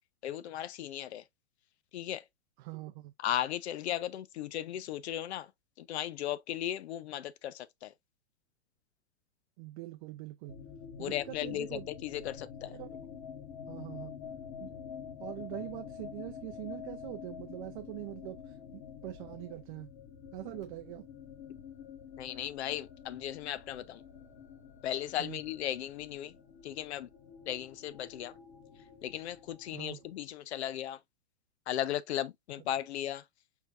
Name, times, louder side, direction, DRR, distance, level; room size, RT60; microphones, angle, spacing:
voice 1, 0.2-1.2 1.9-2.2 3.2-5.5 5.8-7.9 11.0-11.7 12.0-12.7 22.2-24.0 24.8-26.3 26.6-27.1 27.5-28.3 29.0-31.0 31.7-33.2, left 12 dB, 80° left, 0.6 m, -36 dB
voice 2, 2.6-3.1 9.6-10.6 11.0-11.9 12.6-13.0 13.7-14.1 14.6-14.7 15.2-19.9 20.3-21.1 25.2-25.4 29.7-30.0, right 18 dB, 50° right, 0.5 m, -43 dB
sound 1, 10.5-30.3, left 7 dB, 55° left, 1.9 m, -48 dB
4.5 x 3.4 x 2.4 m
hypercardioid pair, 120°, 32 cm